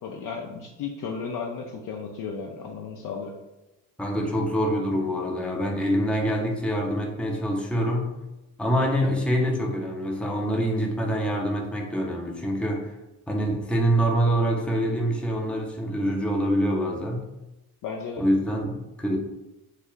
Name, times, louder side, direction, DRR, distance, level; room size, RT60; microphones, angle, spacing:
voice 1, 0.0-3.3 17.8-18.2, left 5 dB, 45° left, 0 dB, 0.5 m, -34 dB
voice 2, 4.0-8.1 8.6-12.9 13.3-17.3 18.2-19.2, equal, ahead, 0 dB, 0.7 m, -25 dB
3.3 x 2.1 x 3.8 m, 0.98 s
hypercardioid pair, 55°, 44 cm